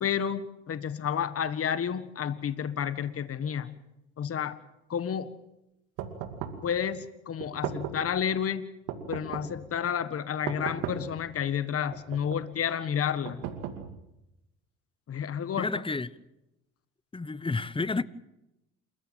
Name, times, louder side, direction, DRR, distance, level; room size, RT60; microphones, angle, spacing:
voice 1, 0.0-3.8 4.2-4.6 4.9-5.4 6.6-8.7 9.1-13.4 15.1-15.7, left 8 dB, 45° left, 1.6 m, -30 dB
sound 1, 6.0-6.7 7.4-8.1 8.9-9.6 10.5-11.2 11.9-12.5 13.2-14.1, right 8 dB, 80° right, 2.5 m, -37 dB
voice 2, 15.6-16.1 17.1-18.0, left 3 dB, 15° left, 1.0 m, -30 dB
28.0 x 15.0 x 7.5 m
supercardioid pair, 70°, 33 cm